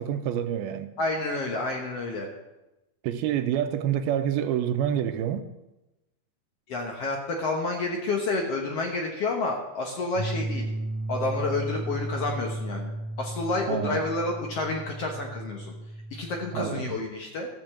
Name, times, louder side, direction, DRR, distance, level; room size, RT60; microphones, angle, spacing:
voice 1, 0.0-0.9 3.0-5.5 13.7-14.0 16.5-16.9, right 10 dB, 85° right, 2.4 m, -27 dB
voice 2, 1.0-2.3 6.7-10.6 11.1-12.9 13.2-15.7 16.1-17.5, left 3 dB, 75° left, 1.4 m, -29 dB
sound 1, 10.2-16.8, right 2 dB, 55° left, 5.5 m, -34 dB
13.5 x 5.2 x 7.6 m
omnidirectional pair, 4.5 m